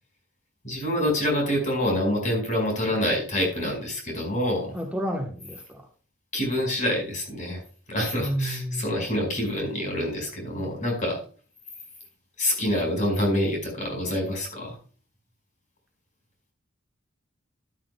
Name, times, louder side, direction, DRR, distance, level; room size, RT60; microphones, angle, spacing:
voice 1, 0.6-4.7 6.3-7.6 7.9-11.2 12.4-14.8, left 1 dB, 40° left, 1 dB, 5.0 m, -26 dB
voice 2, 4.7-5.9 8.2-8.9, equal, 5° right, 1 dB, 1.1 m, -30 dB
13.0 x 11.5 x 2.2 m, 0.39 s
head